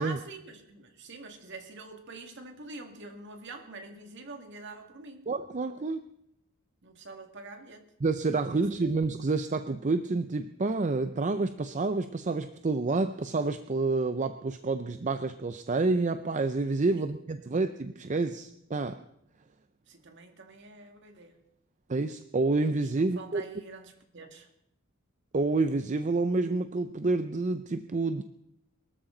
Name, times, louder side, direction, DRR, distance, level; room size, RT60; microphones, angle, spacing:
voice 1, 0.0-5.3 6.8-7.9 8.2-8.9 16.9-17.0 19.9-21.4 22.9-24.5, right 3 dB, 55° right, 4 dB, 2.1 m, -45 dB
voice 2, 5.3-6.0 8.0-19.0 21.9-23.4 25.3-28.2, right 3 dB, 35° right, 10 dB, 0.5 m, -28 dB
22.5 x 13.0 x 3.9 m, 0.77 s
head